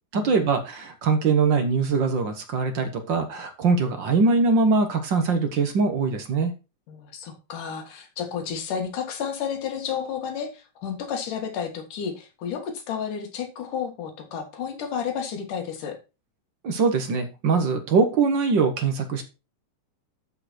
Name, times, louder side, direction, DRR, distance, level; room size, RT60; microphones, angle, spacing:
voice 1, 0.1-6.5 16.6-19.2, right 4 dB, 50° right, 7 dB, 1.4 m, -22 dB
voice 2, 6.9-16.0, left 7 dB, 80° left, 4 dB, 3.4 m, -31 dB
12.5 x 5.1 x 4.4 m, 0.28 s
omnidirectional pair, 3.6 m